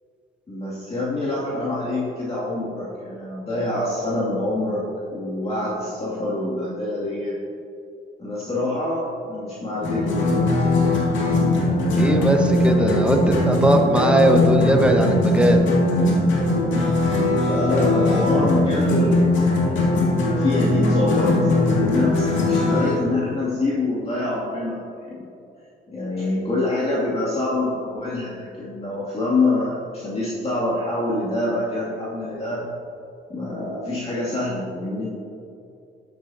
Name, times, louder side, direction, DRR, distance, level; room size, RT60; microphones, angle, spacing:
voice 1, 0.5-7.4 8.2-10.5 17.4-19.8 20.4-25.2 25.9-32.6 33.3-35.2, left 2 dB, 30° left, -7 dB, 2.5 m, -26 dB
sound 1, 9.8-23.0, left 2 dB, 75° left, 2.2 m, -20 dB
voice 2, 11.9-15.7, right 1 dB, 5° right, 3 dB, 1.2 m, -19 dB
12.0 x 9.6 x 2.8 m, 2.5 s
cardioid pair, 90°, 20 cm